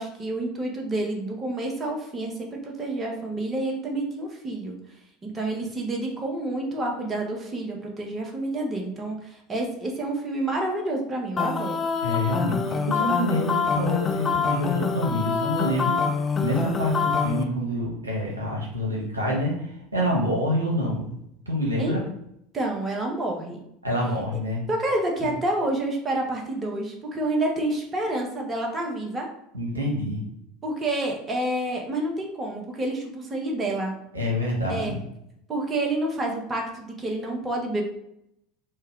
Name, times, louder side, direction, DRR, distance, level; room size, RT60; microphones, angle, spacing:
voice 1, 0.0-4.8 5.2-11.9 21.8-22.0 22.5-23.6 24.3-24.4 24.7-29.3 30.6-33.9 34.7-35.0 35.5-37.8, right 1 dB, 25° right, 0 dB, 0.8 m, -28 dB
sound 1, 11.4-17.4, left 5 dB, 25° left, 0.4 m, -25 dB
voice 2, 12.0-16.0 16.4-19.5 19.9-21.1 21.5-22.0 23.8-24.6 29.5-30.2 34.1-35.0, equal, 85° right, -2 dB, 0.8 m, -26 dB
3.2 x 2.2 x 3.6 m, 0.77 s
figure-of-eight pair, 75°, 0 cm